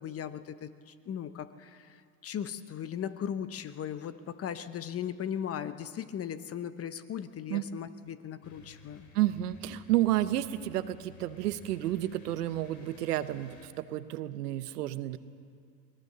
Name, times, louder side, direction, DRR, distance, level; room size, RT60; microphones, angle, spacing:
voice 1, 0.0-9.1, left 9 dB, 30° left, 12 dB, 0.9 m, -38 dB
sound 1, 8.4-13.7, left 4 dB, 50° left, 3.6 m, -54 dB
voice 2, 9.1-15.2, right 14 dB, 85° right, 13 dB, 1.0 m, -31 dB
22.5 x 18.0 x 6.8 m, 2.2 s
hypercardioid pair, 95°, 46 cm